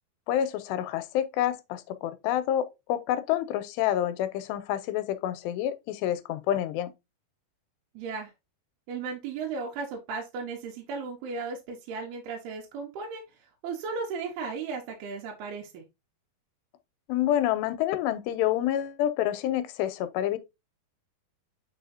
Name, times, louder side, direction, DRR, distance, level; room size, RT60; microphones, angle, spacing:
voice 1, 0.3-6.9 17.1-20.4, left 11 dB, 85° left, 2.7 m, -28 dB
voice 2, 7.9-8.3 8.9-13.2 13.6-15.8, right 4 dB, 70° right, 3.0 m, -35 dB
8.8 x 4.8 x 2.7 m
omnidirectional pair, 5.0 m